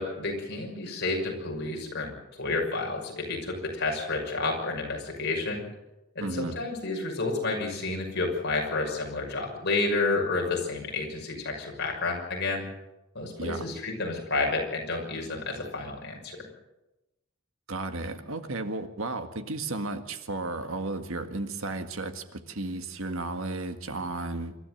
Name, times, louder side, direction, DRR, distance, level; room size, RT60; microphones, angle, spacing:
voice 1, 0.0-5.6 6.1-12.6 13.1-16.5, left 3 dB, 55° left, 0 dB, 6.1 m, -30 dB
voice 2, 6.2-6.6 13.4-13.8 17.7-24.6, right 2 dB, 70° right, 8 dB, 1.8 m, -34 dB
26.5 x 13.0 x 7.9 m, 0.98 s
head